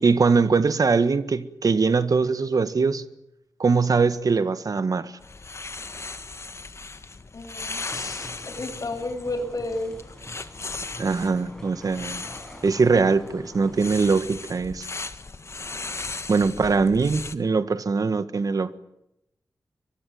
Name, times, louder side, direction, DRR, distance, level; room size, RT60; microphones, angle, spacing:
voice 1, 0.0-3.0 3.6-5.1 11.0-12.3 12.6-14.9 16.3-18.8, right 4 dB, 65° right, 1.6 m, -22 dB
sound 1, 5.2-17.4, left 3 dB, 45° left, 1.6 m, -37 dB
voice 2, 7.3-10.1, left 2 dB, 60° left, 7.1 m, -32 dB
sound 2, 7.7-14.1, left 1 dB, 10° left, 6.7 m, -46 dB
23.5 x 22.5 x 9.5 m
wide cardioid pair, 80°, 7 cm